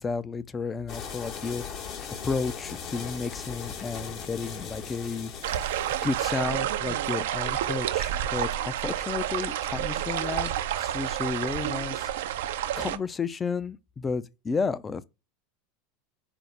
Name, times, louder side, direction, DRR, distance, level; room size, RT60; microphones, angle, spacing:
voice 1, 0.0-5.5 6.0-10.5 10.8-12.1 12.8-15.0, left 4 dB, 20° left, 0.4 m, -32 dB
sound 1, 0.9-6.4, left 7 dB, 45° left, 0.9 m, -39 dB
sound 2, 5.4-13.0, right 11 dB, 75° right, 0.4 m, -29 dB
5.1 x 2.0 x 4.5 m
hypercardioid pair, 100°, 0 cm